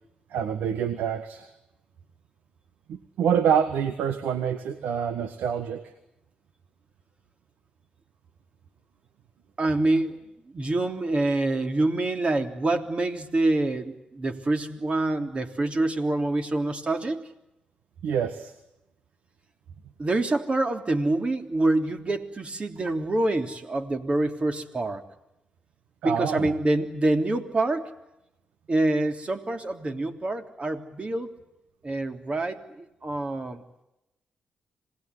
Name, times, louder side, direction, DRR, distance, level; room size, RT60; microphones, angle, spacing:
voice 1, 0.3-1.5 2.9-5.9 18.0-18.5 26.0-26.5, right 8 dB, 90° right, 10 dB, 1.6 m, -26 dB
voice 2, 9.6-10.1 10.5-17.2 20.0-25.0 26.0-27.9 28.7-31.3 31.8-33.6, right 2 dB, 40° right, 6 dB, 3.4 m, -26 dB
27.0 x 19.0 x 9.8 m, 0.91 s
cardioid pair, 60°, 3 cm